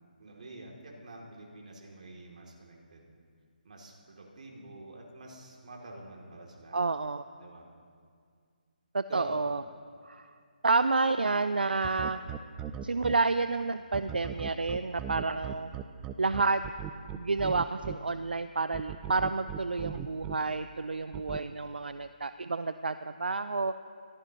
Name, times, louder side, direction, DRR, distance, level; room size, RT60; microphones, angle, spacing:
voice 1, 0.0-3.1 3.6-6.8 7.4-7.7 9.1-9.4, right 2 dB, 50° right, -1 dB, 2.8 m, -46 dB
voice 2, 6.7-7.2 8.9-9.6 10.1-10.3 10.6-12.2 12.8-15.7 16.2-16.6 17.1-23.8, right 3 dB, 75° right, 12 dB, 0.4 m, -29 dB
sound 1, 11.8-13.1 13.9-17.9 18.7-20.3 21.1-21.4, right 10 dB, 10° right, 0.4 m, -38 dB
21.5 x 14.0 x 3.0 m, 2.1 s
figure-of-eight pair, 150°, 5 cm